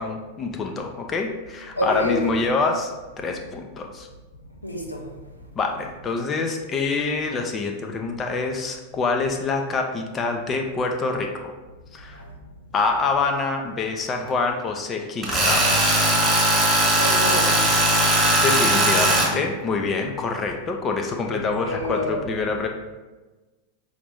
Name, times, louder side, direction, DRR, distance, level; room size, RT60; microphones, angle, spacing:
voice 1, 0.0-2.9 3.2-4.1 5.6-11.5 11.9-12.2 12.7-15.7 18.4-22.7, left 4 dB, 25° left, 3 dB, 0.4 m, -26 dB
voice 2, 1.8-2.4 4.6-5.1 12.1-12.3 17.0-17.6 21.3-22.3, left 1 dB, 85° left, 0 dB, 0.7 m, -28 dB
Tools, 15.2-19.3, right 1 dB, 10° right, 1.2 m, -19 dB
4.9 x 2.5 x 3.4 m, 1.2 s
figure-of-eight pair, 90°, 0 cm